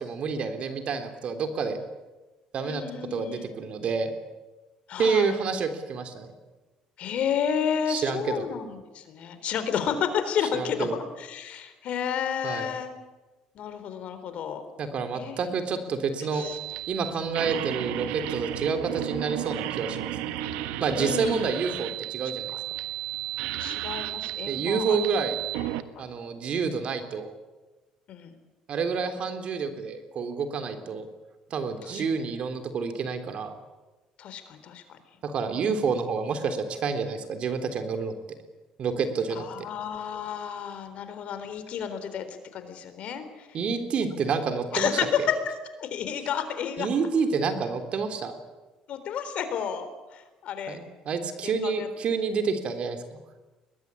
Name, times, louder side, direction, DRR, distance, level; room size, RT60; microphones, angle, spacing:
voice 1, 0.0-1.8 2.5-2.8 3.1-4.1 5.0-6.3 7.9-8.4 10.5-11.0 12.4-12.7 14.8-16.4 16.9-20.3 20.8-22.5 24.5-25.4 26.0-27.3 28.7-31.1 31.5-33.6 35.2-38.1 38.8-39.4 43.5-44.9 46.8-48.4 50.7-53.2, right 5 dB, 55° right, 8 dB, 3.5 m, -28 dB
voice 2, 2.7-3.5 4.9-5.4 7.0-12.9 13.5-14.6 15.1-15.4 16.3-16.6 21.0-21.5 23.6-25.0 26.0-26.1 28.1-28.3 31.9-32.0 34.2-35.0 39.4-43.5 44.7-45.3 45.8-46.9 48.9-50.8 51.4-51.9, left 8 dB, 60° left, 10 dB, 3.9 m, -31 dB
sound 1, 16.4-25.8, right 13 dB, 90° right, 1.4 m, -33 dB
22.5 x 20.0 x 9.9 m, 1.2 s
supercardioid pair, 90°, 2 cm